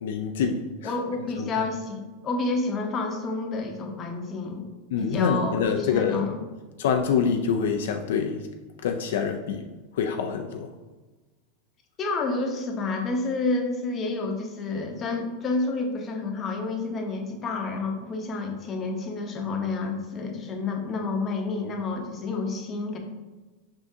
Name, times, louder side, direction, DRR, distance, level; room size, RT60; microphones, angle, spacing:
voice 1, 0.0-0.9 1.4-1.5 4.9-6.3 6.8-8.5 8.8-9.7 9.9-10.7, left 6 dB, 75° left, 4 dB, 0.4 m, -26 dB
voice 2, 0.8-4.7 5.0-6.4 12.0-23.0, left 3 dB, 30° left, 3 dB, 0.7 m, -29 dB
5.3 x 3.6 x 2.7 m, 1.2 s
hypercardioid pair, 110°, 0 cm